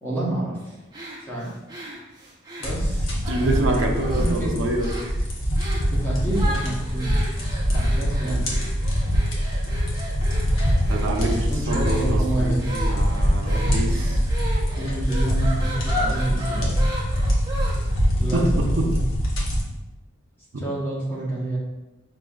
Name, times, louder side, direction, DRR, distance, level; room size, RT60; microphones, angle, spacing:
voice 1, 0.0-0.7 1.2-1.5 2.6-4.6 5.9-7.1 7.7-8.4 11.1-12.7 13.5-14.1 14.7-17.0 18.2-19.0 20.6-21.6, right 1 dB, 10° left, -7 dB, 1.0 m, -29 dB
sound 1, 0.9-3.6 4.0-4.5 4.8-5.1 5.6-5.9 6.3-18.0, equal, 20° right, 0.5 m, -35 dB
sound 2, 2.6-19.6, equal, 75° left, 0.8 m, -23 dB
voice 2, 3.3-5.1 8.2-8.5 10.9-14.2 18.3-18.4, right 1 dB, 70° right, 1 dB, 0.6 m, -27 dB
5.0 x 2.6 x 2.4 m, 1.0 s
head